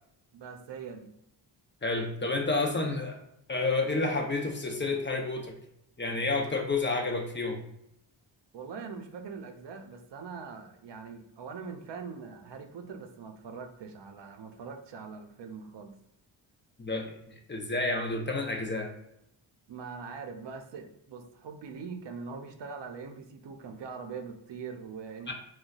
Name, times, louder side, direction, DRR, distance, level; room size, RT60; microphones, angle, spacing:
voice 1, 0.3-1.1 8.5-16.0 19.7-25.3, right 5 dB, 60° right, 4 dB, 0.6 m, -42 dB
voice 2, 1.8-3.2 3.5-5.6 6.0-7.6 16.8-18.9 25.3-25.4, left 3 dB, 25° left, 2 dB, 0.7 m, -30 dB
3.8 x 2.2 x 2.4 m, 0.78 s
cardioid pair, 50°, 48 cm